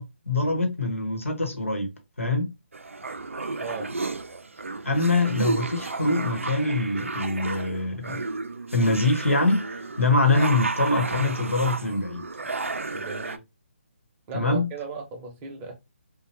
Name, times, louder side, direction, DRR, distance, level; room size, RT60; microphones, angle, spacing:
voice 1, 0.0-1.9 2.2-2.5 4.8-8.2 8.7-9.6 10.0-12.2 14.3-14.7, left 2 dB, 85° left, 1.0 m, -24 dB
sound 1, 2.7-13.4, right 3 dB, 85° right, 0.4 m, -32 dB
voice 2, 3.6-3.9 12.9-13.4 14.3-15.7, right 4 dB, 25° right, 0.7 m, -36 dB
3.2 x 2.2 x 2.8 m
figure-of-eight pair, 145°, 7 cm